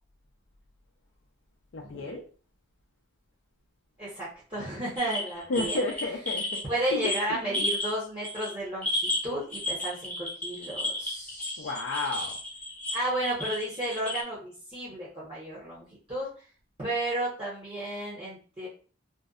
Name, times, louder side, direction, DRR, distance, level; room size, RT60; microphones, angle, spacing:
voice 1, 1.7-2.2 5.5-6.4 6.9-7.1 7.5-7.7 11.6-12.3, left 2 dB, 75° left, -1 dB, 0.4 m, -31 dB
voice 2, 4.0-5.8 6.6-11.7 12.9-16.3 16.8-18.7, right 1 dB, 25° right, -7 dB, 0.7 m, -33 dB
sound 1, 5.0-7.9 8.2-8.5 8.8-14.2, left 1 dB, 10° left, 0.4 m, -33 dB
2.5 x 2.1 x 2.3 m, 0.39 s
head